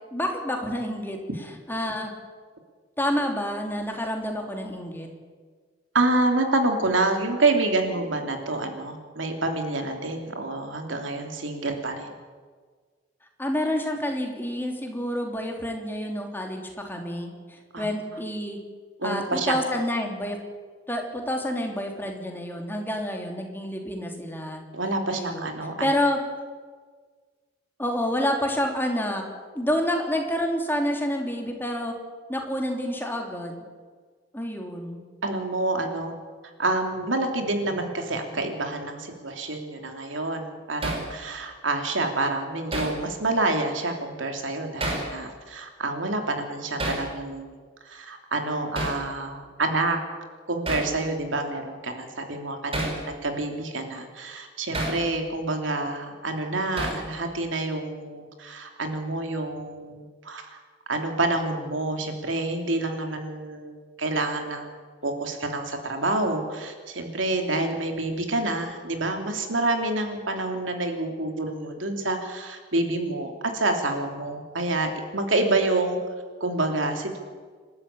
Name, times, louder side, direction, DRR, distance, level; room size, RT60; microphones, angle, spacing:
voice 1, 0.1-2.1 3.0-5.1 13.4-18.6 19.0-20.4 20.9-24.6 25.1-25.5 25.8-26.2 27.8-29.2 29.5-31.9 32.3-33.6 34.3-35.0, equal, 10° left, 2 dB, 3.1 m, -28 dB
voice 2, 5.9-12.1 17.7-17.9 19.0-19.6 24.7-25.9 35.2-36.2 36.6-47.5 47.9-50.0 50.5-60.6 60.9-64.8 65.0-76.0 76.4-77.2, right 2 dB, 85° right, 4 dB, 3.1 m, -27 dB
Hammer, 40.8-41.1 42.7-43.0 44.8-45.1 46.8-47.1 48.8-49.0 50.7-50.9 52.7-53.0 54.7-55.0 56.8-57.1, right 1 dB, 30° right, 4.7 m, -29 dB
27.0 x 13.0 x 8.9 m, 1.5 s
head